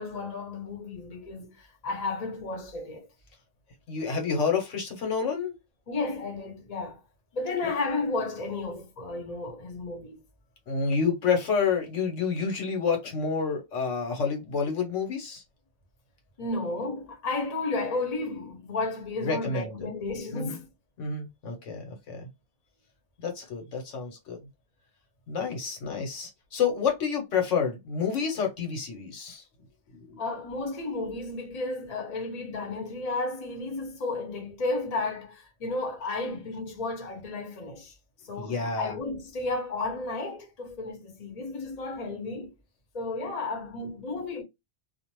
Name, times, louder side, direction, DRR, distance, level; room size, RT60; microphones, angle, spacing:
voice 1, 0.0-3.1 5.9-7.0 7.3-10.2 16.4-20.7 30.2-37.9 38.3-42.5 42.9-44.4, left 3 dB, 40° left, 0.9 m, -33 dB
voice 2, 3.9-5.6 7.6-7.7 10.7-15.4 19.2-19.9 20.3-20.6 21.0-22.3 23.2-24.4 25.3-29.4 29.9-30.2 38.4-38.9, left 5 dB, 85° left, 1.3 m, -29 dB
2.5 x 2.4 x 3.0 m
omnidirectional pair, 1.2 m